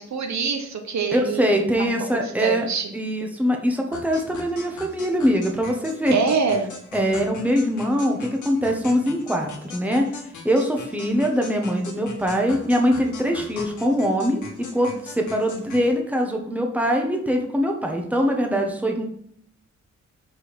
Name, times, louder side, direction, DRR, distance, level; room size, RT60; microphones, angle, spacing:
voice 1, 0.0-2.9 6.1-6.7, right 5 dB, 65° right, 5 dB, 1.0 m, -25 dB
voice 2, 1.1-2.7 2.9-6.2 6.9-10.1 10.4-19.0, equal, 5° right, 1 dB, 1.2 m, -23 dB
sound 1, 3.9-15.9, left 4 dB, 80° left, 1.5 m, -40 dB
5.1 x 4.7 x 6.1 m, 0.66 s
cardioid pair, 100°, 30 cm